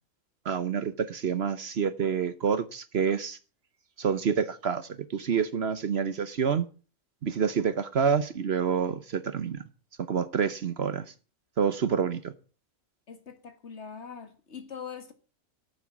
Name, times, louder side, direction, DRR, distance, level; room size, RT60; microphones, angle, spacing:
voice 1, 0.4-3.4 4.0-6.7 7.2-9.6 10.1-11.1 11.6-12.3, right 6 dB, 55° right, 1.0 m, -28 dB
voice 2, 13.1-15.1, left 6 dB, 55° left, 2.0 m, -42 dB
13.0 x 7.6 x 7.1 m
omnidirectional pair, 1.4 m